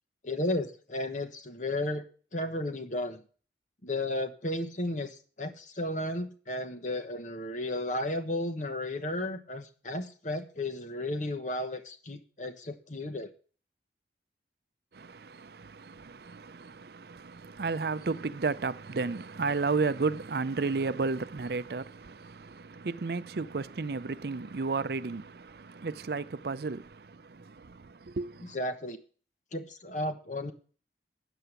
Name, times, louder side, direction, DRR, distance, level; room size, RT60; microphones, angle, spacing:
voice 1, 0.2-2.0 2.3-3.2 3.8-13.3 28.5-29.0 29.5-30.5, left 1 dB, 45° left, 1.1 m, -33 dB
voice 2, 14.9-28.6, right 4 dB, 60° right, 0.5 m, -33 dB
9.1 x 7.6 x 8.1 m
head